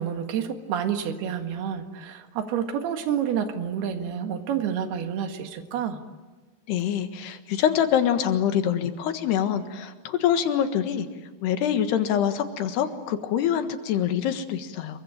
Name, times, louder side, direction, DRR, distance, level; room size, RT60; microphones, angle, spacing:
voice 1, 0.0-6.0, right 8 dB, 70° right, 6 dB, 3.7 m, -29 dB
voice 2, 6.7-11.1 11.4-15.0, left 9 dB, 80° left, 8 dB, 3.6 m, -25 dB
28.0 x 23.5 x 8.9 m, 1.3 s
omnidirectional pair, 4.8 m